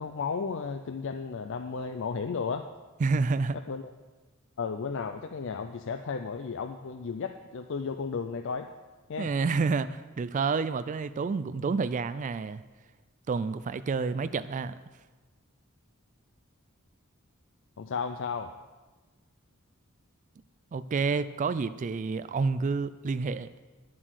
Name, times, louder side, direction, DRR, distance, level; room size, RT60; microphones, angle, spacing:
voice 1, 0.0-2.7 3.7-3.9 4.6-8.7 9.1-9.3 17.8-18.5, left 5 dB, 60° left, 7 dB, 0.5 m, -34 dB
voice 2, 3.0-3.6 9.2-12.6 13.3-14.7 20.7-23.5, right 4 dB, 35° right, 13 dB, 0.3 m, -29 dB
10.0 x 7.5 x 6.3 m, 1.3 s
head